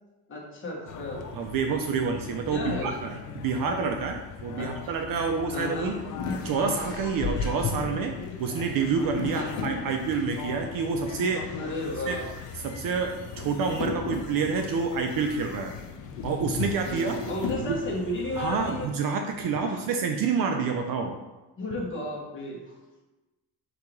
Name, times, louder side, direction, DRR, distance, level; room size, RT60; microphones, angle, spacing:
voice 1, 0.3-1.2 2.5-2.9 4.6-4.7 5.5-6.0 9.3-9.7 11.6-12.3 16.8-19.0 19.6-19.8 21.6-22.6, left 1 dB, 30° left, -3 dB, 1.2 m, -33 dB
sound 1, 0.9-18.9, left 6 dB, 50° left, 0.5 m, -41 dB
voice 2, 1.3-5.9 6.4-11.4 12.1-12.2 12.6-15.7 16.2-17.2 17.7-17.8 18.4-21.2, right 5 dB, 55° right, 4 dB, 0.5 m, -28 dB
sound 2, 5.6-10.4 11.0-17.6, left 4 dB, 85° left, 0.8 m, -36 dB
3.9 x 2.8 x 4.6 m, 1.1 s
cardioid pair, 140°, 42 cm